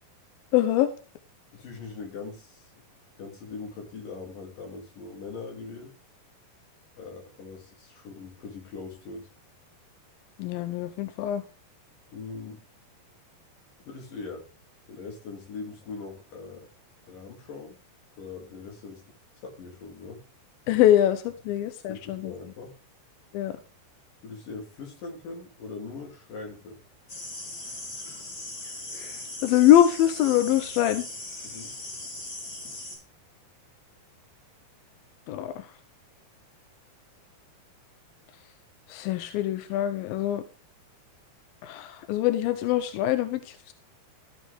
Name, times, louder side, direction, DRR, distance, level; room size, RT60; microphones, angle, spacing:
voice 1, 0.5-0.9 10.4-11.4 20.7-22.3 23.3-23.5 28.9-31.0 35.3-35.7 38.9-40.4 41.6-43.7, left 12 dB, 75° left, 10 dB, 2.3 m, -23 dB
voice 2, 1.5-2.8 3.2-6.0 7.0-9.3 12.1-12.6 13.9-14.5 14.9-16.7 17.0-17.8 18.1-19.0 19.4-20.2 21.9-22.8 24.2-26.8 31.4-31.7, left 4 dB, 55° left, 2 dB, 4.2 m, -41 dB
sound 1, 27.1-33.0, left 2 dB, 25° left, 4.6 m, -39 dB
13.0 x 8.3 x 3.5 m, 0.37 s
omnidirectional pair, 4.8 m